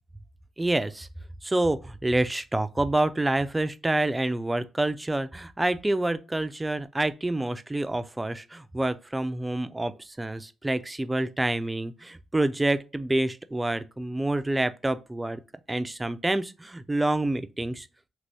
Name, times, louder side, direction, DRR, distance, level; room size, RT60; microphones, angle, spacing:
voice 1, 0.6-1.1 1.4-15.4 15.7-17.9, right 2 dB, 15° right, 0.4 m, -27 dB
2.9 x 2.6 x 3.3 m
supercardioid pair, 60°, 0 cm